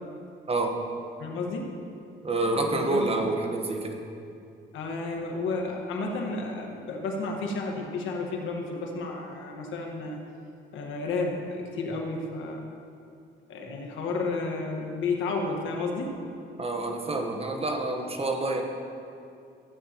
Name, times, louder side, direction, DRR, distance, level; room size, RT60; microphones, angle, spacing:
voice 1, 1.2-1.7 2.8-3.0 4.7-10.2 10.7-12.7 13.5-16.1, left 3 dB, 85° left, 1 dB, 1.5 m, -32 dB
voice 2, 2.2-4.0 16.6-18.6, right 2 dB, 30° right, 3 dB, 1.2 m, -28 dB
15.0 x 8.6 x 3.0 m, 2.5 s
cardioid pair, 90°, 20 cm